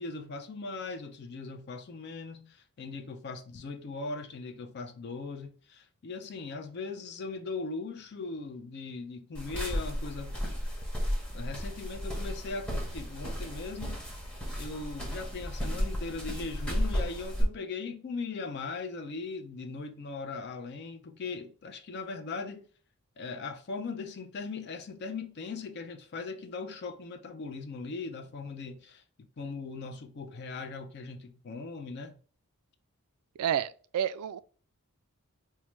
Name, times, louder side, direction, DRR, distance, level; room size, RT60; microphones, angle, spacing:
voice 1, 0.0-10.4 11.3-14.0 14.6-22.7 23.2-32.2, left 4 dB, 50° left, 0.4 m, -39 dB
sound 1, 9.3-17.4, equal, 5° left, 0.9 m, -34 dB
voice 2, 33.4-34.4, right 9 dB, 85° right, 0.3 m, -30 dB
4.5 x 2.1 x 3.0 m
head